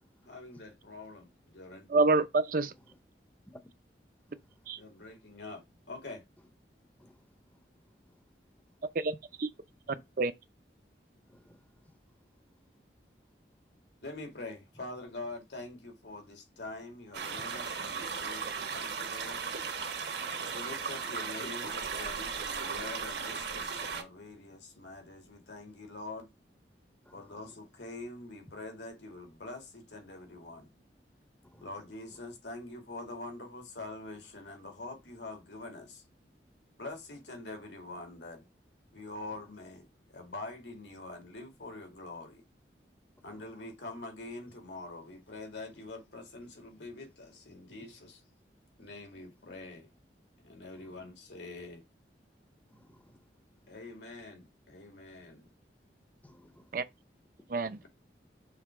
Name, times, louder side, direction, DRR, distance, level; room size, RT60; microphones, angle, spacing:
voice 1, 0.2-1.9 4.8-6.2 14.0-19.4 20.5-26.3 27.1-30.7 31.6-36.0 36.8-38.5 38.9-42.4 43.2-48.2 48.8-49.9 50.4-51.8 53.7-55.4, left 2 dB, 85° left, 2.3 m, -45 dB
voice 2, 1.9-2.7 4.7-4.8 9.0-9.5 10.2-10.3 56.7-56.8 57.5-57.8, right 3 dB, 50° right, 0.5 m, -27 dB
sound 1, 17.1-24.0, right 5 dB, 70° right, 1.2 m, -36 dB
voice 3, 20.2-20.7 21.4-21.5 27.1-27.2 31.4-31.7 52.7-53.2 56.2-56.6, equal, 10° left, 0.6 m, -55 dB
6.4 x 3.4 x 4.8 m
head